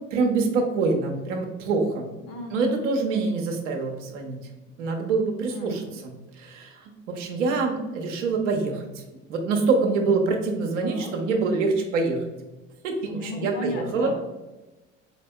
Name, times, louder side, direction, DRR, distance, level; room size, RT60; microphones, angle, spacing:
voice 1, 0.1-2.3 2.5-4.4 4.8-6.1 6.4-8.9 9.3-12.3 12.8-14.1, right 4 dB, 75° right, 3 dB, 0.8 m, -25 dB
voice 2, 2.3-2.8 5.5-6.0 10.8-11.1 13.0-14.2, left 1 dB, 60° left, 3 dB, 1.1 m, -35 dB
4.2 x 3.3 x 2.2 m, 1.1 s
hypercardioid pair, 60°, 37 cm